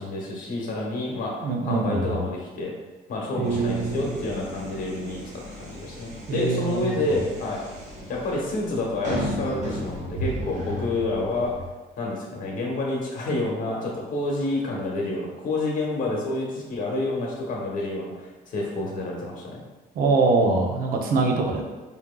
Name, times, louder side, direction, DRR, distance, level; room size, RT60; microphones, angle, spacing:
voice 1, 0.0-2.7 3.1-7.6 8.1-11.5 12.0-19.6, left 2 dB, 55° left, -2 dB, 1.1 m, -29 dB
voice 2, 1.4-2.3 3.4-4.1 6.3-7.2 19.9-21.6, right 3 dB, 60° right, 1 dB, 0.7 m, -24 dB
sound 1, 3.4-11.7, equal, 45° right, 1.0 m, -35 dB
4.6 x 2.7 x 2.3 m, 1.2 s
cardioid pair, 110°, 17 cm